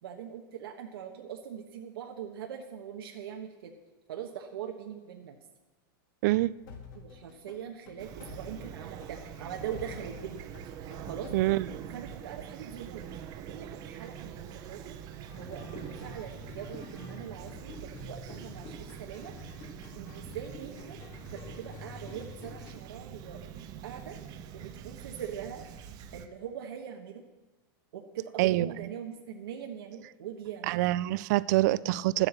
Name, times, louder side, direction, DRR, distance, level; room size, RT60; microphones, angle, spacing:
voice 1, 0.0-3.7 4.1-5.4 6.9-10.4 11.1-11.3 11.9-13.0 13.4-15.0 15.4-19.3 19.9-21.0 21.3-23.4 23.8-24.2 24.5-25.6 26.1-27.2 27.9-30.8, right 9 dB, 85° right, 2 dB, 1.2 m, -42 dB
sound 1, 6.6-11.8, left 5 dB, 55° left, 2.0 m, -49 dB
Fowl / Chirp tweet, 8.0-26.3, right 9 dB, 30° right, 0.7 m, -45 dB
voice 2, 11.3-11.7 28.4-28.7 30.7-32.3, right 17 dB, 50° right, 19 dB, 0.4 m, -25 dB
sound 2, 15.3-22.7, left 2 dB, 25° left, 1.4 m, -47 dB
11.5 x 7.9 x 7.4 m, 1.1 s
supercardioid pair, 155°, 12 cm